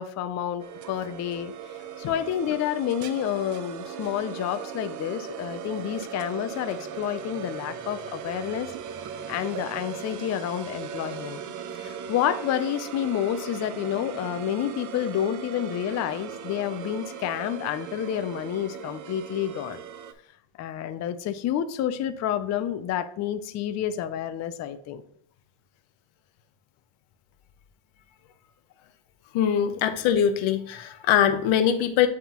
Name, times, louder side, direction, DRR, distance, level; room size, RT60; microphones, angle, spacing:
voice 1, 0.0-1.5 2.0-8.7 9.3-11.4 11.7-19.8 20.6-25.0, left 10 dB, 35° left, 11 dB, 0.4 m, -29 dB
sound 1, 0.6-20.1, right 8 dB, 40° right, 0.5 m, -38 dB
voice 2, 29.3-32.1, left 9 dB, 70° left, 9 dB, 0.9 m, -22 dB
9.2 x 3.6 x 2.9 m, 0.64 s
cardioid pair, 135°, 50 cm